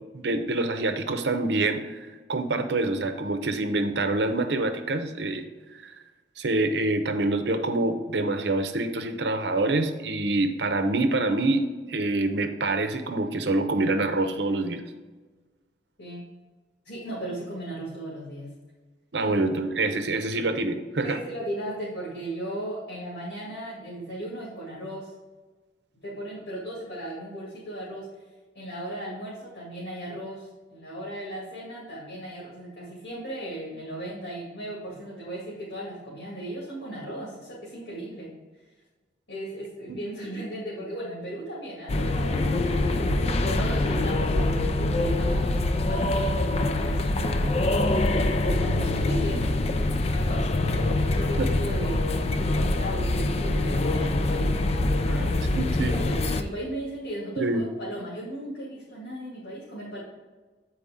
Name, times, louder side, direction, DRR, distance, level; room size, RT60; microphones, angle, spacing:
voice 1, 0.1-5.4 5.7-5.9 6.4-14.8 19.1-21.2 39.9-40.0 51.4-51.6 55.4-56.0 57.4-57.6, right 2 dB, 75° right, 7 dB, 0.7 m, -26 dB
voice 2, 16.8-18.5 19.2-19.4 21.0-25.1 26.0-28.1 28.5-38.3 39.3-43.0 43.4-47.5 48.3-49.6 50.1-54.5 54.8-55.3 55.9-60.0, right 1 dB, 85° left, -7 dB, 2.2 m, -36 dB
sound 1, 41.9-56.4, left 2 dB, 35° left, 0.4 m, -24 dB
8.3 x 4.7 x 3.7 m, 1.3 s
head